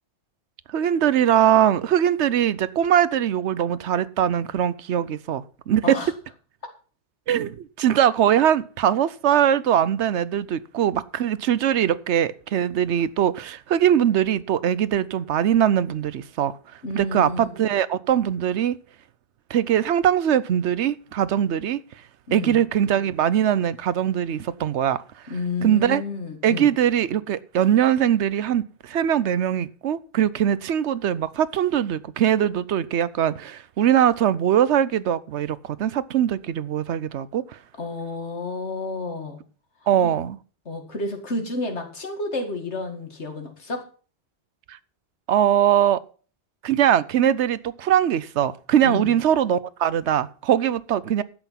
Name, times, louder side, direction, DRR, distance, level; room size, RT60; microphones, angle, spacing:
voice 1, 0.7-6.0 7.3-16.6 16.9-18.8 19.5-21.8 22.3-25.0 25.6-26.0 26.4-37.6 39.9-40.4 44.7-44.8 45.3-46.0 46.6-51.2, right 10 dB, 90° right, 1.0 m, -21 dB
voice 2, 16.8-17.6 22.3-22.6 25.3-26.7 37.8-39.4 40.0-40.2 40.7-43.8 48.8-49.1, left 2 dB, 85° left, 2.4 m, -30 dB
11.5 x 7.9 x 5.8 m
omnidirectional pair, 1.1 m